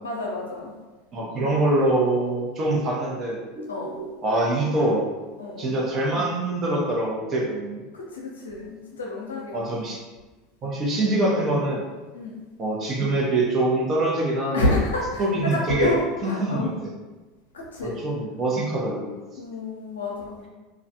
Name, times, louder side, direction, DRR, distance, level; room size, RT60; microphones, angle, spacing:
voice 1, 0.0-0.7 3.7-3.9 5.4-5.7 7.9-9.9 12.1-12.4 14.5-16.7 17.5-18.0 19.4-20.5, left 2 dB, 85° left, -3 dB, 0.6 m, -29 dB
voice 2, 1.1-5.1 5.6-7.8 9.5-10.0 10.6-11.8 12.6-14.7 15.2-15.9 16.2-16.9 17.8-19.1, right 2 dB, 40° right, -3 dB, 0.9 m, -24 dB
2.4 x 2.3 x 2.7 m, 1.2 s
hypercardioid pair, 85°, 0 cm